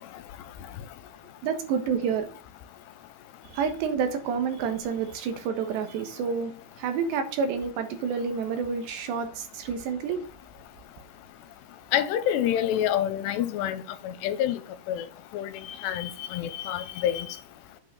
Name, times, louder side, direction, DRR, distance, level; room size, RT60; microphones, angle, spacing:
voice 1, 1.4-2.3 3.5-6.5 6.8-10.2, right 6 dB, 80° right, 3.6 m, -29 dB
voice 2, 11.9-14.6 14.9-15.1 15.3-15.5 15.8-17.3, left 11 dB, 85° left, 2.9 m, -27 dB
8.8 x 5.7 x 6.7 m
omnidirectional pair, 5.0 m